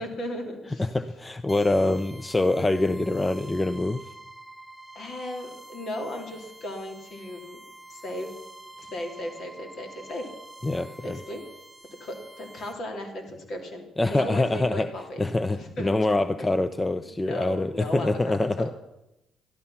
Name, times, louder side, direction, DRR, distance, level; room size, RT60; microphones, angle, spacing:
voice 1, 0.0-0.9 4.9-7.6 7.9-8.3 8.8-10.3 11.0-11.4 12.0-16.2 17.2-18.7, left 1 dB, 60° left, 3 dB, 3.3 m, -36 dB
voice 2, 0.8-4.0 10.6-11.2 14.0-14.9 15.2-18.7, left 2 dB, 20° left, 13 dB, 0.7 m, -25 dB
sound 1, 1.5-12.7, right 2 dB, 10° right, 2.1 m, -47 dB
13.5 x 12.5 x 5.8 m, 0.91 s
hypercardioid pair, 55°, 0 cm